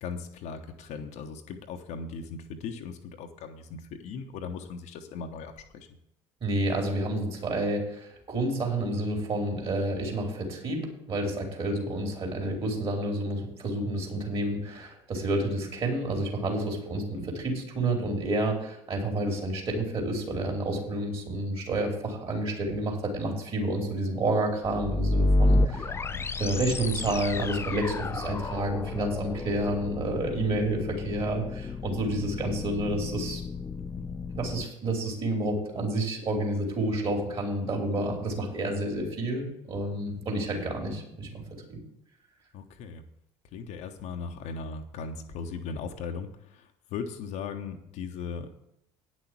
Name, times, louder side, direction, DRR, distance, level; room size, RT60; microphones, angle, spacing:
voice 1, 0.0-5.9 17.1-17.3 25.9-26.2 26.5-26.6 34.0-34.1 40.6-40.7 42.5-43.0 43.5-48.6, left 5 dB, 50° left, 5 dB, 1.0 m, -38 dB
voice 2, 6.4-25.9 26.4-33.4 34.3-41.4 41.7-41.8, right 1 dB, 35° right, 1 dB, 3.6 m, -29 dB
sound 1, 24.6-34.6, left 2 dB, 15° left, 0.5 m, -30 dB
9.7 x 6.3 x 7.5 m, 0.80 s
figure-of-eight pair, 60°, 15 cm